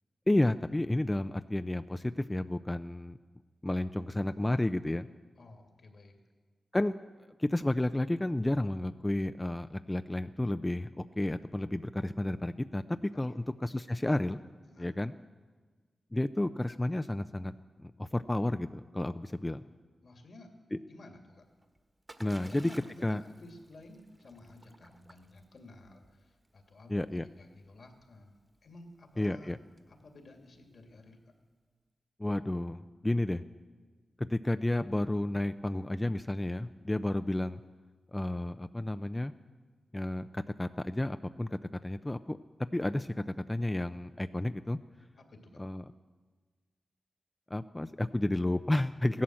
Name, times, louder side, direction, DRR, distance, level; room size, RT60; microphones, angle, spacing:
voice 1, 0.3-3.2 3.6-5.1 6.7-6.9 7.4-14.4 14.8-15.1 16.1-17.5 17.8-19.6 20.7-20.8 22.2-22.7 23.0-23.2 26.9-27.3 29.2-29.6 32.2-33.4 34.2-37.6 38.1-39.3 39.9-42.4 42.7-44.8 45.6-45.8 47.5-49.2, left 1 dB, 20° left, 11 dB, 0.5 m, -31 dB
voice 2, 5.4-6.2 13.1-13.4 14.6-14.9 20.0-20.5 20.8-21.4 22.3-29.5 29.9-31.3 45.2-45.6, left 2 dB, 70° left, 4 dB, 2.5 m, -54 dB
Splash splatter, 21.4-31.2, right 1 dB, 20° right, 1.4 m, -58 dB
16.0 x 11.5 x 7.6 m, 1.5 s
cardioid pair, 45°, 0 cm